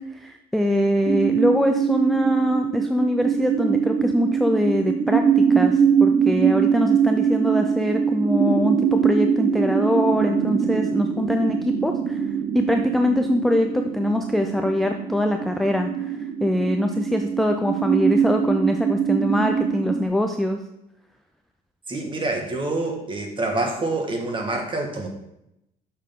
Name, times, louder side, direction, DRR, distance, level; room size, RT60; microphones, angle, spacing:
voice 1, 0.0-12.3 12.5-20.6, left 1 dB, ahead, 4 dB, 0.4 m, -23 dB
sound 1, 1.1-20.1, right 7 dB, 45° right, 0.6 m, -23 dB
voice 2, 21.9-25.1, right 2 dB, 30° right, 2 dB, 1.5 m, -26 dB
6.2 x 5.8 x 3.6 m, 0.83 s
cardioid pair, 110°, 17 cm